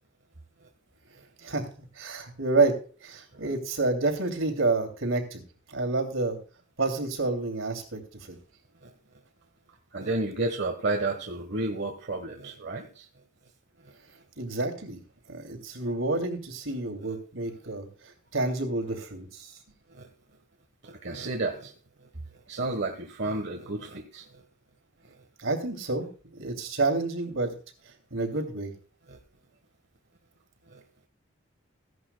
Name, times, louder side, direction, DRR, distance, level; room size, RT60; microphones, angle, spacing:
voice 1, 2.0-5.4 5.7-6.4 6.8-8.0 8.3-8.4 14.4-15.0 15.3-19.5 25.4-26.1 26.3-27.5 28.1-28.7, right 3 dB, 70° right, 5 dB, 2.8 m, -29 dB
voice 2, 9.9-13.1 19.9-20.1 20.8-21.7 22.5-24.2 29.1-29.2 30.7-30.8, right 2 dB, 55° right, 3 dB, 1.3 m, -32 dB
16.5 x 11.0 x 2.3 m, 0.38 s
head